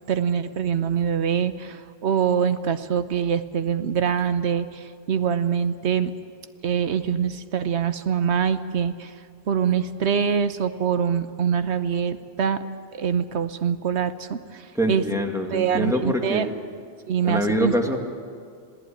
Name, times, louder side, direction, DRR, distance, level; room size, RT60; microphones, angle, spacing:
voice 1, 0.1-6.1 6.6-9.1 9.5-12.6 12.9-15.0 15.5-16.5 17.1-17.7, right 7 dB, 85° right, 11 dB, 1.2 m, -24 dB
voice 2, 14.7-16.5 17.2-18.0, equal, 5° right, 2 dB, 2.2 m, -24 dB
26.5 x 17.5 x 8.8 m, 2.2 s
omnidirectional pair, 1.1 m